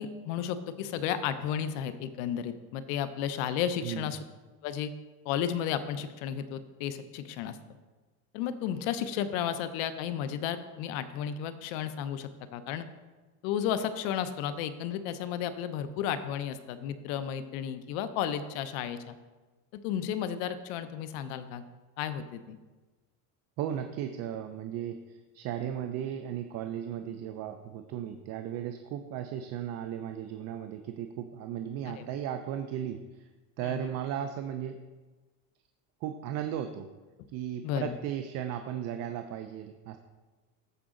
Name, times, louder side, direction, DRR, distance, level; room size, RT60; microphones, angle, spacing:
voice 1, 0.0-4.2 4.6-4.9 5.2-7.6 8.3-12.8 13.4-19.2 19.8-21.6 22.0-22.6 31.9-32.1 33.6-33.9 37.6-38.0, left 9 dB, 70° left, 11 dB, 0.8 m, -33 dB
voice 2, 23.6-33.3 33.6-34.8 36.0-36.9 37.3-40.0, right 10 dB, 40° right, 7 dB, 0.4 m, -36 dB
13.5 x 4.9 x 3.7 m, 1.3 s
cardioid pair, 155°, 44 cm